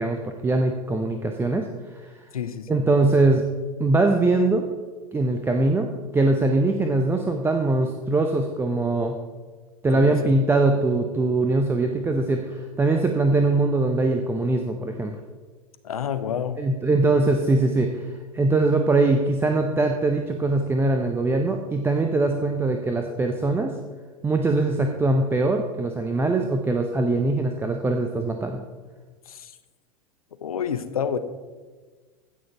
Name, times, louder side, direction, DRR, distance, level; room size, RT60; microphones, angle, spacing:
voice 1, 0.0-2.1 2.7-3.5 3.8-4.7 5.1-9.1 9.8-15.2 16.6-18.1 18.3-23.7 24.2-28.6, right 2 dB, 10° right, 5 dB, 0.7 m, -22 dB
voice 2, 2.3-2.8 9.9-10.3 15.8-16.6 29.3-29.5 30.4-31.2, left 8 dB, 70° left, 10 dB, 0.9 m, -29 dB
15.5 x 6.4 x 4.5 m, 1.4 s
figure-of-eight pair, 90°, 19 cm